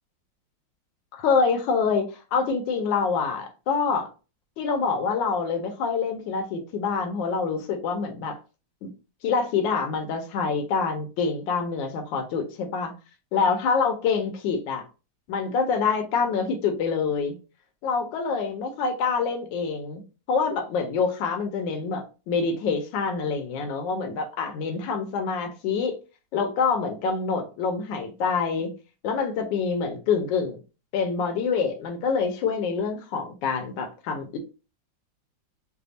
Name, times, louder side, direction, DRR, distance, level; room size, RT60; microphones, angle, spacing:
voice 1, 1.1-4.1 4.6-8.4 8.8-8.9 9.2-12.9 13.3-14.8 15.3-17.4 17.8-20.0 20.3-26.0 26.3-28.7 29.0-30.6 30.9-34.4, left 5 dB, 80° left, 1.3 m, -26 dB
3.4 x 2.0 x 3.9 m
omnidirectional pair, 2.0 m